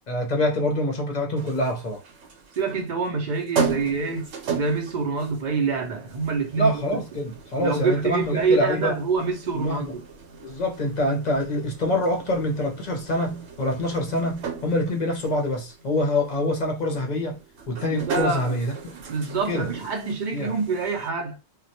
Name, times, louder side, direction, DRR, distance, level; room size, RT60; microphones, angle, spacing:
voice 1, 0.1-2.0 6.6-8.9 9.5-9.8 10.4-17.4 17.7-18.7 19.5-19.7 20.3-20.5, left 1 dB, 45° left, 0.6 m, -25 dB
sound 1, 1.4-21.1, right 6 dB, 70° right, 0.9 m, -37 dB
voice 2, 2.6-6.8 7.6-10.0 17.9-18.6 18.9-21.4, right 4 dB, 55° right, 0.6 m, -26 dB
2.3 x 2.1 x 2.7 m
omnidirectional pair, 1.2 m